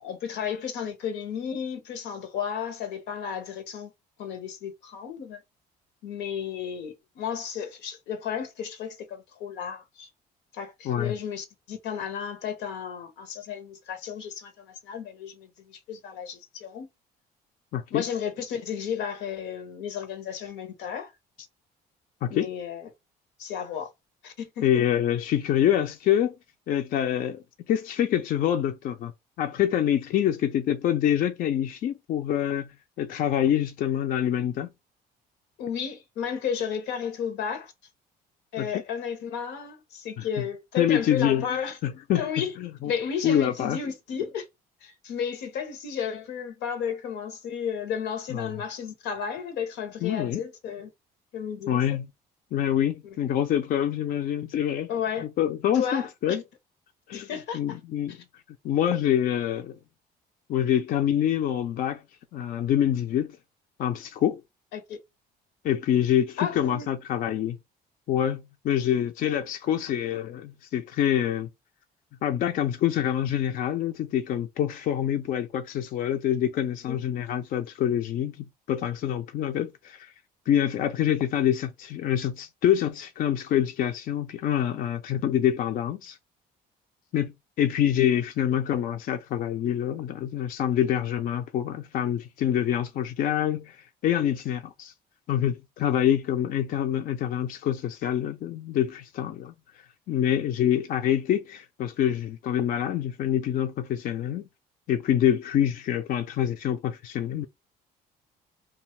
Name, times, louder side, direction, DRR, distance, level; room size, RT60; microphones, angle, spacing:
voice 1, 0.0-3.9 4.2-5.4 6.0-10.1 10.5-16.9 17.9-21.1 22.3-22.9 23.4-23.9 24.2-24.8 35.6-37.7 38.5-41.8 42.1-42.5 42.8-44.5 44.8-50.9 51.3-51.8 53.0-53.2 54.9-55.3 55.7-56.4 57.1-57.8 58.1-58.2 64.7-65.0 66.4-66.9 76.9-77.0, left 7 dB, 85° left, 0.8 m, -33 dB
voice 2, 17.7-18.1 22.2-22.5 24.6-26.4 26.7-29.1 29.4-34.7 38.6-38.7 40.2-40.3 40.8-41.5 41.8-42.2 42.6-42.9 43.2-43.8 48.3-48.6 50.0-50.4 51.7-52.1 52.5-54.9 55.4-56.4 57.1-57.3 57.5-58.2 58.6-59.8 60.5-62.0 62.3-63.4 63.8-64.4 65.6-67.6 68.1-71.5 72.2-80.1 80.5-86.2 87.1-94.9 95.3-99.5 100.1-104.5 104.9-107.5, left 10 dB, 55° left, 0.4 m, -26 dB
2.5 x 2.3 x 2.9 m
cardioid pair, 110°, 17 cm